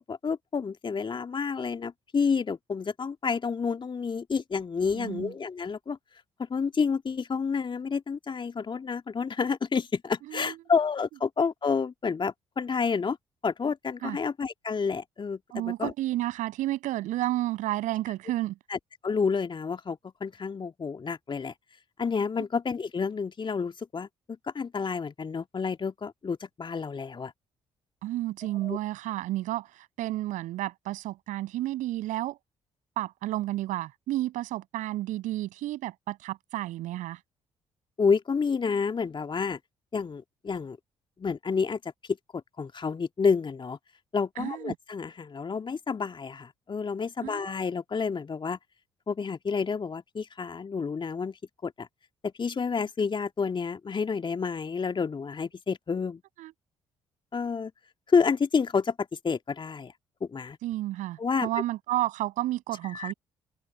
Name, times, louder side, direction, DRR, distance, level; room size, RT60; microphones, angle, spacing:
voice 1, 0.0-6.0 6.4-13.2 13.4-15.9 18.7-21.5 22.0-24.1 24.5-27.3 28.6-28.8 38.0-39.6 39.9-40.8 41.2-41.8 42.3-43.8 44.1-48.6 49.1-51.9 52.2-56.2 57.3-57.7 58.1-59.9 60.2-60.6 61.2-61.5 62.8-63.1, left 5 dB, 35° left, 2.2 m, -29 dB
voice 2, 4.9-5.3 10.3-10.6 14.0-14.2 15.5-18.6 28.0-32.4 33.0-37.2 44.4-44.7 47.2-47.6 56.4-56.5 60.6-63.1, right 15 dB, 60° right, 7.3 m, -31 dB
open air
figure-of-eight pair, 45°, 15 cm